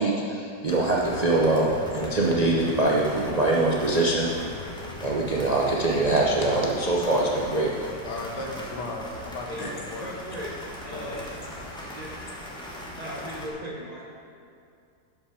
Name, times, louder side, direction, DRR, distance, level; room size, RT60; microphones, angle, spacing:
voice 1, 0.0-4.3 5.0-7.7 9.6-9.7, right 2 dB, 75° right, -4 dB, 0.3 m, -23 dB
sound 1, 0.7-13.5, left 1 dB, 5° left, 1.2 m, -39 dB
voice 2, 8.0-10.2 10.9-11.2, left 2 dB, 70° left, 1 dB, 1.7 m, -36 dB
voice 3, 10.0-10.5 10.8-11.4 11.9-12.1 13.0-14.1, equal, 25° right, -4 dB, 1.1 m, -37 dB
12.0 x 5.6 x 4.9 m, 2.4 s
omnidirectional pair, 1.9 m